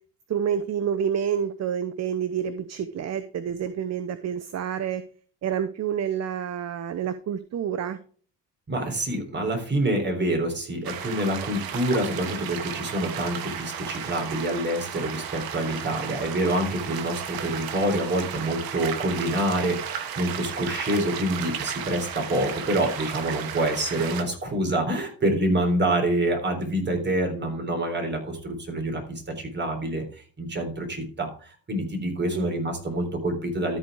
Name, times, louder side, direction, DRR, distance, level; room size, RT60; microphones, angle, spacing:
voice 1, 0.3-5.0 5.4-8.0 32.3-32.6, right 8 dB, 45° right, 11 dB, 0.8 m, -28 dB
voice 2, 8.7-33.8, right 1 dB, 30° right, 2 dB, 3.7 m, -27 dB
sound 1, 10.8-24.2, right 8 dB, 70° right, 1.4 m, -34 dB
13.0 x 4.7 x 4.7 m, 0.43 s
supercardioid pair, 85°, 38 cm